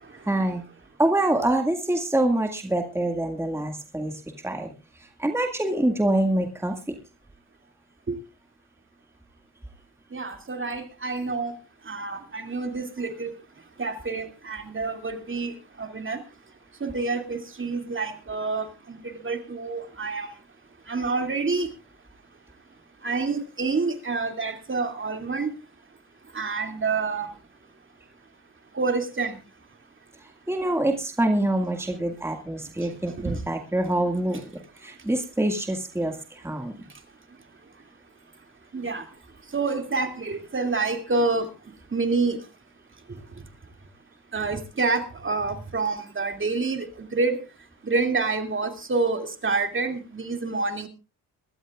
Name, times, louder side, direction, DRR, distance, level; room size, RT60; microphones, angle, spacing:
voice 1, 0.3-0.6 1.0-4.7 5.2-6.8 30.5-34.5 34.8-36.7, right 1 dB, 5° right, 4 dB, 1.9 m, -25 dB
voice 2, 10.1-11.5 11.9-13.3 13.8-16.2 16.8-20.3 20.9-21.7 23.0-25.5 26.3-27.3 28.7-29.4 33.2-33.4 38.7-39.0 39.5-41.5 41.9-42.4 44.3-47.4 47.8-50.9, right 3 dB, 30° right, 6 dB, 2.5 m, -27 dB
23.5 x 12.5 x 2.4 m, 0.31 s
cardioid pair, 90°, 39 cm